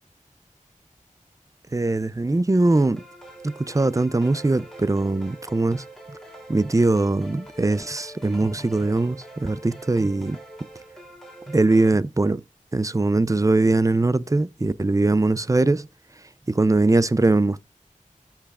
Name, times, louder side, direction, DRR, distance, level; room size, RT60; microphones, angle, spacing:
voice 1, 1.7-3.0 3.4-5.8 6.5-10.4 11.5-12.4 12.7-15.9 16.5-17.6, right 2 dB, 25° right, 0.5 m, -21 dB
sound 1, 2.7-11.9, right 1 dB, 5° left, 3.0 m, -44 dB
15.0 x 5.8 x 2.4 m
wide cardioid pair, 50°, 14 cm